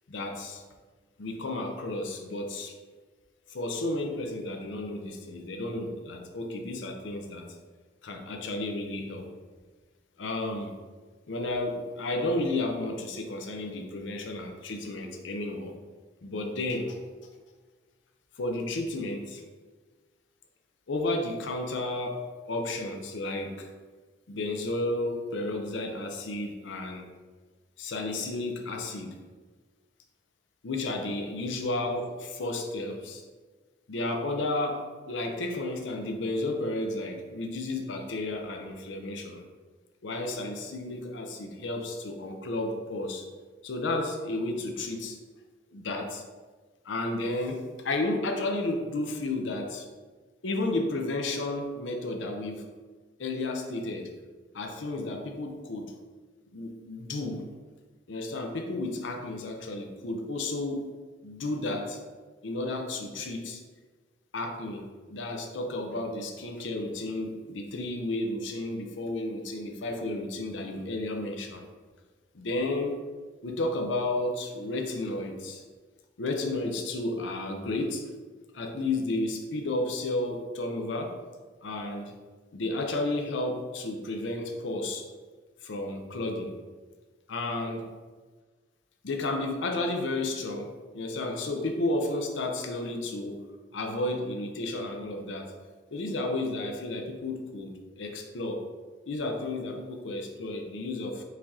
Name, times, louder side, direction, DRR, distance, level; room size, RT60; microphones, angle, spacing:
voice 1, 0.1-0.6 1.2-2.7 3.5-7.5 8.0-9.3 10.2-10.7 11.3-15.8 16.2-17.0 18.4-19.4 20.9-22.2 22.5-23.7 24.3-27.1 27.8-29.1 30.6-33.2 33.9-39.4 40.0-43.2 43.6-45.2 45.7-46.2 46.8-49.9 50.4-52.6 53.2-54.1 54.5-55.9 56.5-57.5 58.1-60.9 61.2-62.0 62.4-63.6 64.3-71.7 72.3-73.0 73.4-75.6 76.2-78.0 78.5-81.2 81.6-82.1 82.5-85.0 85.6-86.5 87.3-87.9 89.0-93.4 93.7-95.5 95.9-98.6 99.1-101.2, left 2 dB, 80° left, 3 dB, 0.6 m, -32 dB
4.9 x 2.8 x 3.6 m, 1.4 s
head